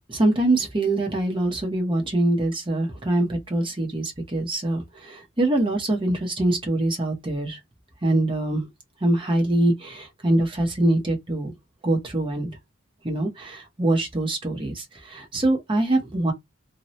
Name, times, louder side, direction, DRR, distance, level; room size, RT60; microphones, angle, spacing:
voice 1, 0.1-7.6 8.0-8.6 9.0-11.5 11.8-12.5 13.0-16.3, right 1 dB, 25° right, 0.8 m, -24 dB
2.8 x 2.2 x 3.0 m
head